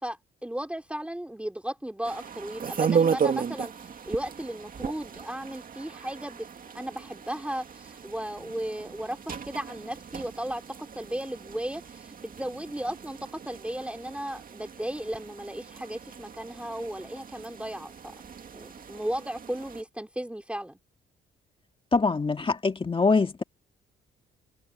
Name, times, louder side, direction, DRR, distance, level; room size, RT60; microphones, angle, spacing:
voice 1, 0.0-3.7 4.0-6.5 6.7-10.6 10.9-17.9 18.5-20.8, right 1 dB, 5° right, 3.0 m, -35 dB
sound 1, 2.0-19.8, right 6 dB, 45° right, 2.2 m, -35 dB
voice 2, 21.9-23.4, left 4 dB, 25° left, 1.9 m, -24 dB
cardioid pair, 90°, 20 cm